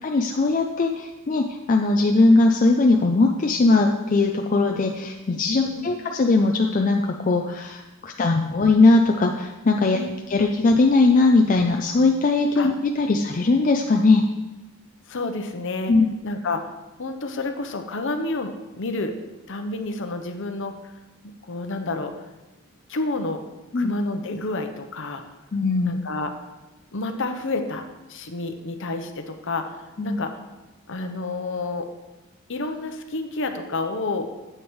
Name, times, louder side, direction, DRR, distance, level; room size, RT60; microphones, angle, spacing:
voice 1, 0.0-10.0 10.3-14.3 15.9-16.1 23.7-23.9 25.5-26.0 30.0-30.2, left 3 dB, 35° left, 2 dB, 0.4 m, -20 dB
voice 2, 15.1-15.9 16.2-16.7 17.0-19.2 19.5-20.9 21.2-22.1 22.9-23.4 23.7-25.2 25.8-26.3 26.9-30.4 30.9-31.9 32.5-34.3, left 2 dB, 55° left, 7 dB, 0.8 m, -29 dB
9.3 x 8.0 x 3.1 m, 1.1 s
head